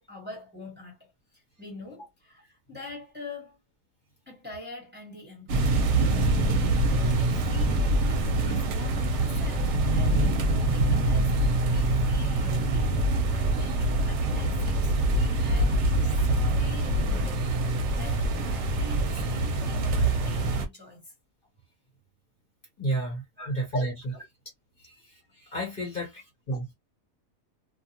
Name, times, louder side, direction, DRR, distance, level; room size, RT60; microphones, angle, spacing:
voice 1, 0.0-3.6 4.3-6.5 6.9-12.9 13.3-17.5 17.9-21.1 23.4-23.7 24.1-24.2 25.9-26.0, left 2 dB, 10° right, 1.3 m, -45 dB
sound 1, 5.5-20.6, right 2 dB, 60° right, 0.9 m, -25 dB
voice 2, 22.8-23.2 23.5-24.1 25.5-26.1 26.5-26.6, right 1 dB, 40° left, 1.2 m, -29 dB
2.5 x 2.3 x 2.8 m
omnidirectional pair, 1.5 m